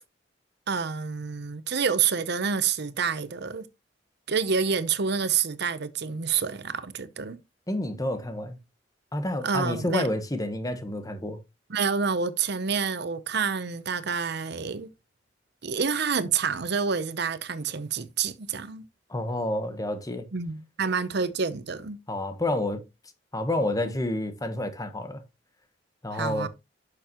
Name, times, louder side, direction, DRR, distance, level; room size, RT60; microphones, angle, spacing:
voice 1, 0.7-3.7 4.3-7.4 9.4-10.1 11.7-14.9 15.6-18.9 20.3-22.0 26.1-26.5, right 6 dB, 60° right, 0.8 m, -28 dB
voice 2, 7.7-8.6 9.1-11.4 19.1-20.3 22.1-22.8 23.3-25.2 26.0-26.5, left 1 dB, 20° left, 1.2 m, -29 dB
11.0 x 6.8 x 3.0 m
head